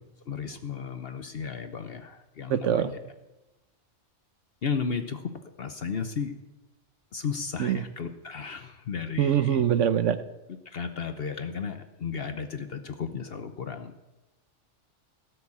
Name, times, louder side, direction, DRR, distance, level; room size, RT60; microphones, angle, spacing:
voice 1, 0.3-2.9 4.6-5.2 5.6-6.3 7.1-9.6 10.7-13.9, left 6 dB, 55° left, 8 dB, 1.0 m, -34 dB
voice 2, 2.5-2.9 7.6-7.8 9.2-10.2, right 9 dB, 80° right, 12 dB, 1.1 m, -24 dB
17.0 x 6.9 x 8.6 m, 1.0 s
omnidirectional pair, 1.3 m